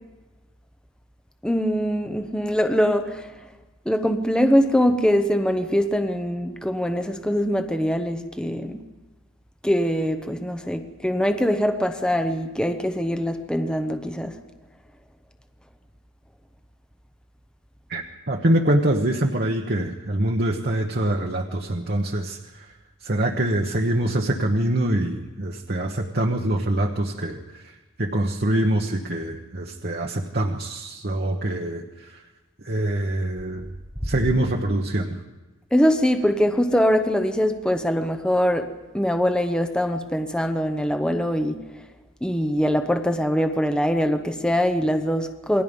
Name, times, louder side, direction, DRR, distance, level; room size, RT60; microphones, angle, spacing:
voice 1, 1.4-3.3 3.9-8.8 9.6-14.4 35.7-38.7 38.9-41.6 42.2-45.6, equal, 5° left, 7 dB, 0.9 m, -23 dB
voice 2, 17.9-22.7 23.0-27.7 28.0-32.2 32.6-33.7 34.0-35.2, right 1 dB, 45° right, 1 dB, 1.2 m, -24 dB
28.5 x 21.0 x 5.4 m, 1.2 s
head